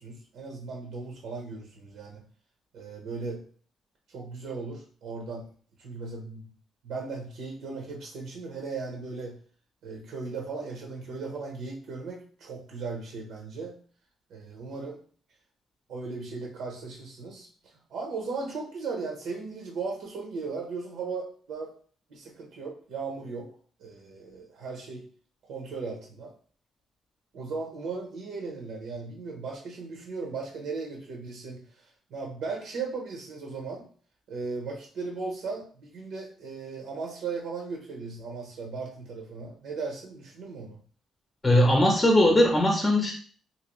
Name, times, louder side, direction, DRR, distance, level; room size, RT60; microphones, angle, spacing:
voice 1, 0.0-2.2 2.7-3.4 4.1-5.4 5.8-6.5 6.8-9.4 9.8-13.8 14.3-15.0 15.9-21.7 22.1-23.5 23.8-25.0 25.4-26.3 27.3-31.8 32.1-33.8 34.3-40.8, right 4 dB, 80° right, 0 dB, 0.8 m, -37 dB
voice 2, 41.4-43.1, left 1 dB, 20° left, 1 dB, 0.6 m, -20 dB
2.9 x 2.7 x 3.0 m, 0.43 s
cardioid pair, 90°, 0 cm